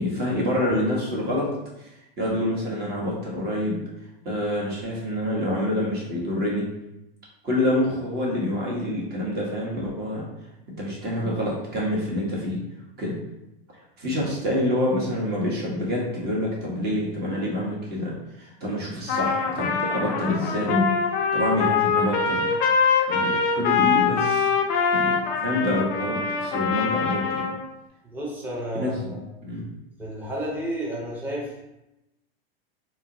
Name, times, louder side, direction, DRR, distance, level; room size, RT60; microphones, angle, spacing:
voice 1, 0.0-1.5 1.8-1.9 2.2-3.8 4.2-6.7 7.4-10.3 10.7-12.6 13.0-13.2 14.0-20.9 21.3-22.5 23.1-24.5 24.9-27.5 28.7-29.0 29.5-29.7, left 1 dB, 30° right, -4 dB, 1.1 m, -27 dB
Trumpet, 19.1-27.6, left 5 dB, 30° left, 0.4 m, -24 dB
voice 2, 28.0-29.2 30.0-31.6, equal, 5° right, -5 dB, 0.8 m, -31 dB
3.9 x 2.0 x 2.7 m, 0.91 s
hypercardioid pair, 120°, 30 cm